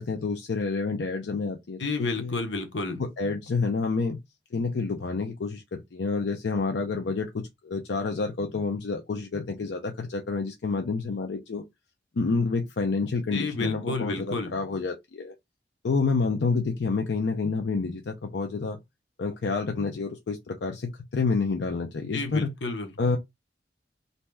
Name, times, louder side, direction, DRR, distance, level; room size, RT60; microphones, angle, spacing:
voice 1, 0.0-2.4 3.2-4.2 4.5-11.6 12.2-15.3 15.8-18.8 19.2-22.5 23.0-23.2, left 4 dB, 70° left, 0.5 m, -28 dB
voice 2, 1.8-3.0 13.3-14.5 22.1-22.9, left 3 dB, 90° left, 0.8 m, -31 dB
2.7 x 2.2 x 3.2 m
head